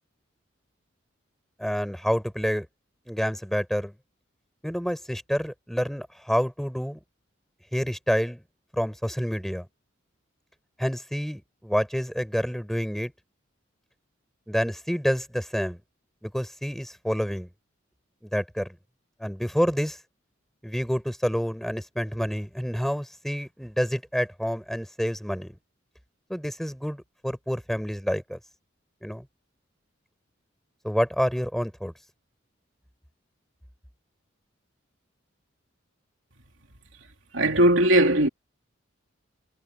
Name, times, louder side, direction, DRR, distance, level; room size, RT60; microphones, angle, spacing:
voice 1, 1.6-2.7 3.1-3.9 4.6-7.0 7.7-8.4 8.7-9.7 10.8-13.1 14.5-15.8 16.2-17.5 18.2-18.8 19.2-20.0 20.6-25.5 26.3-28.4 29.0-29.3 30.8-31.9, equal, ahead, 7.0 m, -28 dB
voice 2, 37.3-38.3, right 1 dB, 70° right, 3.5 m, -19 dB
head